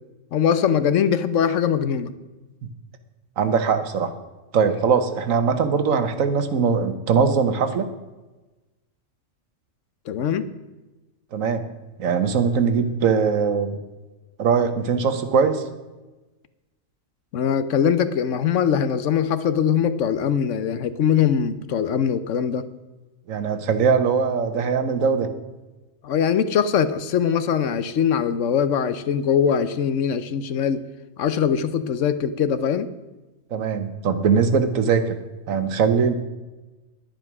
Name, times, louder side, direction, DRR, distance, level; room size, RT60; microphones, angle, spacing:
voice 1, 0.3-2.1 10.1-10.5 17.3-22.6 26.0-30.8 31.2-32.9, left 8 dB, 70° left, 13 dB, 1.1 m, -22 dB
voice 2, 3.4-4.1 4.5-7.9 11.3-11.6 12.0-13.8 14.4-15.6 23.3-25.3 33.5-35.2 35.5-36.1, right 6 dB, 85° right, 10 dB, 1.4 m, -21 dB
10.5 x 10.5 x 6.0 m, 1.1 s
omnidirectional pair, 1.3 m